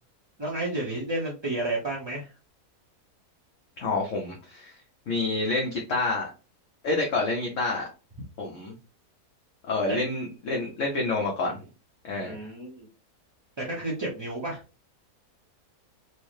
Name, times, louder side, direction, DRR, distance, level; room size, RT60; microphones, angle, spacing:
voice 1, 0.4-2.3 9.9-10.0 12.1-12.9 13.6-14.6, right 2 dB, 30° right, -5 dB, 0.5 m, -31 dB
voice 2, 3.8-4.8 5.1-6.3 6.8-7.9 8.4-8.7 9.7-11.6 12.0-12.5, left 3 dB, 60° left, -1 dB, 1.0 m, -28 dB
4.4 x 2.1 x 3.1 m, 0.33 s
omnidirectional pair, 1.7 m